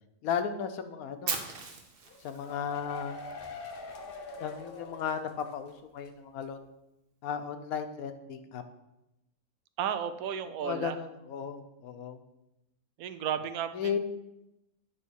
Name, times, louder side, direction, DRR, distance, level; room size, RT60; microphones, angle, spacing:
voice 1, 0.2-1.5 2.2-3.2 4.4-6.6 7.2-8.6 10.6-12.2 13.7-14.0, left 7 dB, 85° left, 8 dB, 1.1 m, -35 dB
Fire, 1.3-3.3, right 5 dB, 45° right, 0.9 m, -37 dB
sound 1, 2.1-5.7 6.0-6.1 6.4-6.5, left 3 dB, 50° left, 0.8 m, -44 dB
voice 2, 9.8-11.0 13.0-14.0, right 8 dB, 85° right, 10 dB, 1.1 m, -33 dB
9.1 x 3.2 x 6.2 m, 0.90 s
omnidirectional pair, 1.5 m